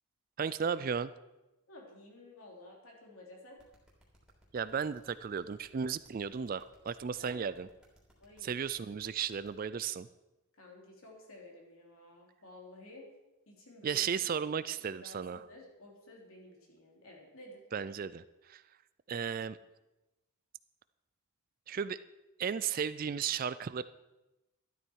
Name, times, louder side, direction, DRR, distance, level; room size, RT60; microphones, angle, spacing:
voice 1, 0.4-1.1 4.5-7.7 8.4-10.1 13.8-15.4 17.7-18.6 19.1-19.6 21.7-22.0 22.4-23.8, right 7 dB, 40° right, 15 dB, 0.3 m, -35 dB
voice 2, 1.7-3.6 7.2-7.5 8.2-8.6 10.5-13.1 13.5-14.1 15.0-17.6, left 1 dB, 70° left, -1 dB, 3.4 m, -53 dB
sound 1, 3.6-9.5, equal, 5° right, 3.2 m, -64 dB
13.0 x 12.0 x 4.7 m, 1.0 s
head